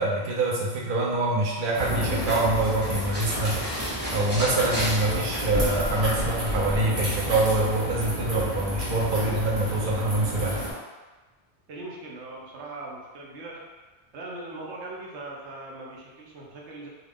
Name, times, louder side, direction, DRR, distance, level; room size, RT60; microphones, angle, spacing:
voice 1, 0.0-3.6 4.1-10.6, right 2 dB, 55° right, -3 dB, 0.6 m, -25 dB
sound 1, 1.7-6.8, equal, 10° right, 1.0 m, -33 dB
sound 2, 1.7-10.7, equal, 35° right, 1.1 m, -31 dB
voice 2, 9.0-9.4 11.7-13.6 14.1-16.9, right 2 dB, 80° right, -3 dB, 0.9 m, -40 dB
2.4 x 2.3 x 3.4 m, 1.2 s
omnidirectional pair, 1.2 m